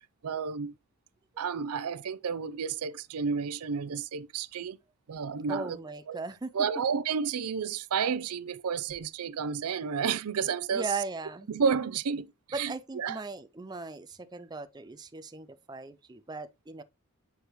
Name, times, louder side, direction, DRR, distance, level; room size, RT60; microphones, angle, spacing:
voice 1, 0.2-0.7 1.4-4.8 5.1-5.8 6.1-6.2 6.5-10.9 11.5-12.3 12.5-13.2, right 6 dB, 90° right, 0.5 m, -31 dB
voice 2, 5.5-6.5 10.7-11.5 12.5-16.8, right 3 dB, 20° right, 0.4 m, -38 dB
8.1 x 4.9 x 3.0 m
head